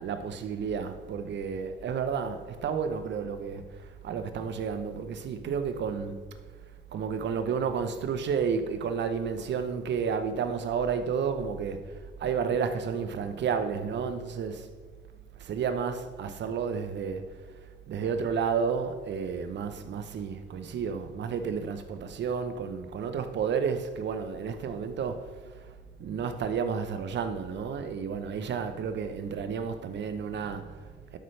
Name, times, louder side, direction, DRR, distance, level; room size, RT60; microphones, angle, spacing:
voice 1, 0.0-6.2 6.9-14.7 15.4-17.6 17.9-31.2, right 6 dB, 65° right, 0.8 m, -31 dB
12.0 x 5.6 x 3.3 m
cardioid pair, 90°, 20 cm